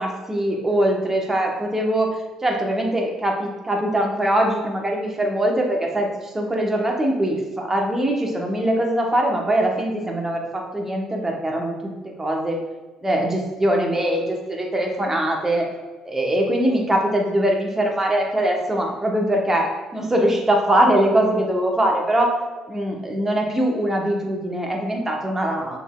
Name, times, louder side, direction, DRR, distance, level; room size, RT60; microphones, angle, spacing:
voice 1, 0.0-2.1 2.4-11.7 12.2-12.6 13.0-15.7 16.0-22.3 22.7-25.8, right 1 dB, 20° right, 0 dB, 1.1 m, -22 dB
5.9 x 3.6 x 2.4 m, 1.3 s
hypercardioid pair, 55°, 2 cm